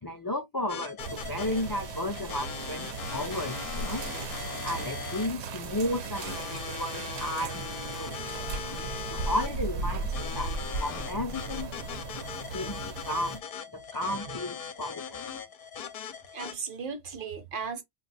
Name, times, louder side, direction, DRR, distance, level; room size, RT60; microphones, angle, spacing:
voice 1, 0.0-7.6 8.0-8.1 9.1-11.7 12.5-13.4 13.7-15.2, left 1 dB, 35° left, 0.3 m, -34 dB
sound 1, 0.7-16.5, left 7 dB, 65° left, 0.8 m, -40 dB
sound 2, 1.0-13.4, right 4 dB, 90° right, 0.9 m, -37 dB
voice 2, 8.7-9.1 10.9-11.2 12.6-12.8 14.1-14.4 16.3-17.8, right 5 dB, 60° right, 0.8 m, -38 dB
2.5 x 2.3 x 3.9 m
omnidirectional pair, 1.1 m